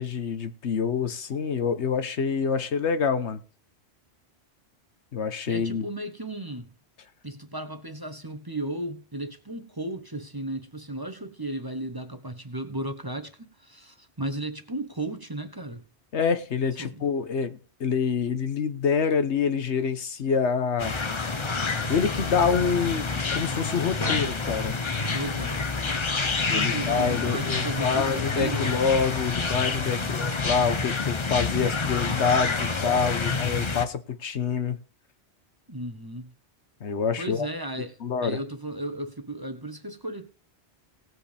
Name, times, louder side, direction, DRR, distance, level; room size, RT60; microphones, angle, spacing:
voice 1, 0.0-3.4 5.1-5.9 16.1-20.9 21.9-23.0 23.3-24.8 26.5-34.8 36.8-37.5 38.0-38.4, left 6 dB, 80° left, 1.3 m, -26 dB
voice 2, 5.5-6.7 7.2-15.8 16.8-17.1 25.1-25.7 26.4-28.8 29.9-30.3 35.7-36.3 37.2-40.3, right 1 dB, 20° right, 1.0 m, -35 dB
sound 1, 20.8-33.9, left 4 dB, 30° left, 0.8 m, -28 dB
18.5 x 7.8 x 3.4 m
omnidirectional pair, 1.1 m